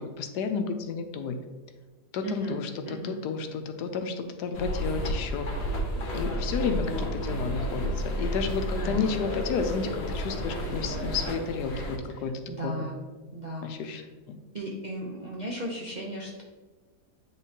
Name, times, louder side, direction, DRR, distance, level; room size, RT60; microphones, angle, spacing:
voice 1, 0.0-1.4 2.1-5.5 6.0-12.8 13.6-14.0 14.3-14.4, left 5 dB, 80° left, 7 dB, 1.2 m, -32 dB
voice 2, 2.2-3.2 6.0-6.4 8.1-8.3 8.8-9.1 12.1-13.0 13.3-14.0 14.5-16.4, right 1 dB, 50° right, -4 dB, 0.5 m, -37 dB
sound 1, 4.5-12.0, equal, 45° left, 1.0 m, -31 dB
9.0 x 3.7 x 2.8 m, 1.3 s
omnidirectional pair, 1.8 m